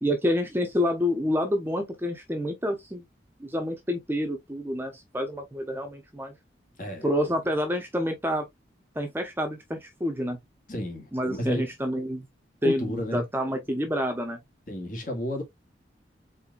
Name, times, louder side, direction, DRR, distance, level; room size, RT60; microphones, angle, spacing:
voice 1, 0.0-3.0 3.4-6.3 7.0-8.5 8.9-10.4 11.1-12.3 12.6-14.4, equal, 10° right, 0.8 m, -28 dB
voice 2, 10.7-11.7 12.6-13.2 14.7-15.4, equal, 45° left, 1.7 m, -32 dB
4.3 x 3.9 x 2.4 m
head